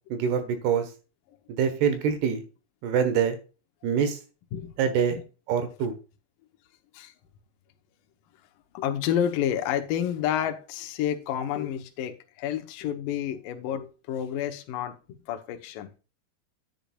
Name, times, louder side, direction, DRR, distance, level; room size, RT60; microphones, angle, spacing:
voice 1, 0.1-0.9 1.5-2.4 2.8-3.4 3.8-4.2 4.8-5.2 5.5-5.9, right 7 dB, 70° right, 3.2 m, -25 dB
voice 2, 8.7-15.0 15.3-15.9, left 10 dB, 70° left, 2.1 m, -29 dB
10.5 x 8.8 x 2.4 m
omnidirectional pair, 5.1 m